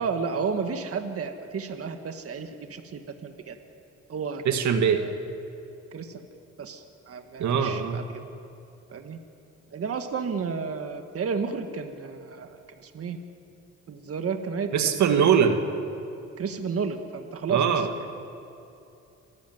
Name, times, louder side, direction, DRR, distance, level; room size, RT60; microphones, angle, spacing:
voice 1, 0.0-3.6 4.1-4.4 4.8-5.1 5.9-6.2 6.6-8.0 8.9-9.2 9.7-13.2 13.9-15.0 16.4-17.8, right 5 dB, 50° right, 6 dB, 1.8 m, -32 dB
voice 2, 4.5-5.0 7.4-8.1 14.7-15.6 17.5-17.9, right 7 dB, 70° right, 6 dB, 1.9 m, -22 dB
27.0 x 14.0 x 9.4 m, 2.7 s
cardioid pair, 90°, 30 cm